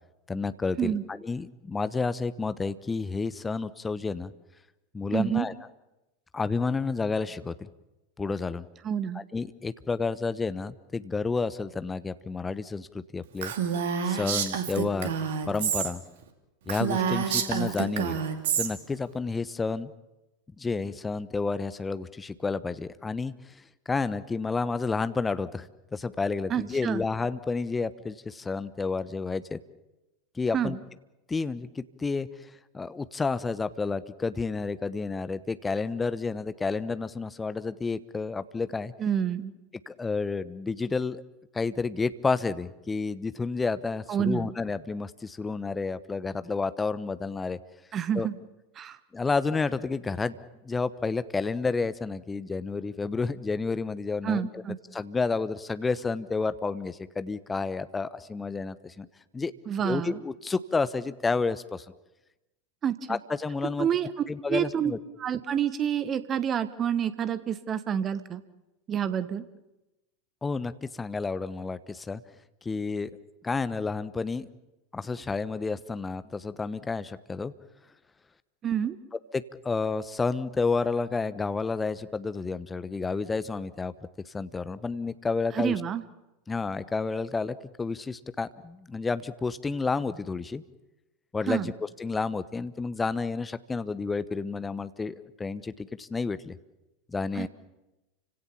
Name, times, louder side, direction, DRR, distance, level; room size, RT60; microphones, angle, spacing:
voice 1, 0.3-4.3 4.9-5.5 6.3-7.7 8.2-8.6 9.3-13.5 14.0-15.1 15.5-16.0 16.7-18.2 18.6-19.9 20.6-23.3 23.9-29.6 30.4-30.7 31.3-32.3 32.7-38.9 39.9-41.2 41.5-47.6 48.1-48.3 49.1-50.4 50.6-54.5 54.9-59.1 59.3-59.5 59.8-61.8 63.1-63.9 64.3-65.0 70.4-72.2 72.6-73.1 73.4-74.5 74.9-77.5 79.3-83.9 84.3-85.8 86.5-90.6 91.3-91.7 92.0-96.6 97.1-97.5, left 4 dB, 15° left, 14 dB, 1.0 m, -30 dB
voice 2, 5.1-5.5 8.8-9.2 26.5-27.0 30.5-30.8 39.0-39.5 44.1-44.5 47.9-48.3 48.8-49.0 54.2-54.8 59.7-60.2 62.8-63.2 63.8-64.9 65.2-68.4 68.9-69.4 78.6-79.0 85.5-86.0 91.5-91.7 97.3-97.5, right 8 dB, 30° right, 14 dB, 1.4 m, -28 dB
Female speech woman speaking, 13.4-15.9 16.2-16.3 16.7-18.7, right 7 dB, 60° right, 2.6 m, -28 dB
29.5 x 17.0 x 7.2 m, 0.99 s
figure-of-eight pair, 85°, 0 cm